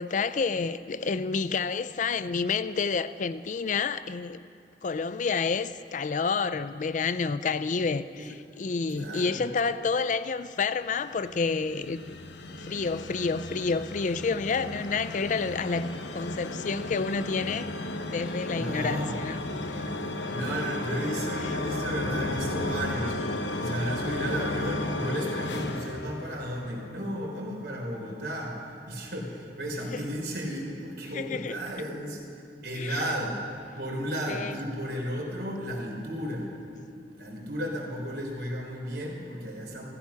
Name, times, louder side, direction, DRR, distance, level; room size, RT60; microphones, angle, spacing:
voice 1, 0.0-4.5 4.8-12.2 12.5-17.7 18.0-19.9 29.9-30.0 31.1-31.6 32.7-33.0 34.3-34.6, left 4 dB, 45° left, 0.4 m, -29 dB
voice 2, 8.9-9.4 18.5-19.2 20.3-23.2 23.5-28.6 28.9-32.2 32.6-33.4 33.8-36.5 37.1-39.9, equal, 65° right, 4.0 m, -33 dB
sound 1, 10.8-26.9, left 2 dB, 75° left, 1.0 m, -34 dB
15.5 x 15.0 x 5.8 m
head